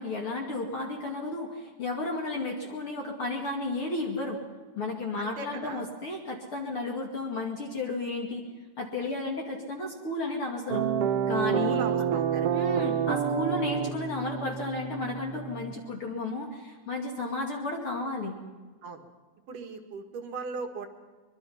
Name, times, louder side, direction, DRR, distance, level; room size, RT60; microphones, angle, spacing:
voice 1, 0.0-4.4 4.8-8.4 8.8-10.9 11.3-11.8 12.5-18.4, left 2 dB, 45° left, 0 dB, 3.0 m, -33 dB
voice 2, 5.2-5.9 11.6-12.5 18.8-19.0 19.5-20.9, right 4 dB, 80° right, 6 dB, 3.4 m, -38 dB
sound 1, 10.7-15.7, right 8 dB, 65° right, 1.6 m, -28 dB
23.5 x 23.0 x 5.8 m, 1.4 s
omnidirectional pair, 3.6 m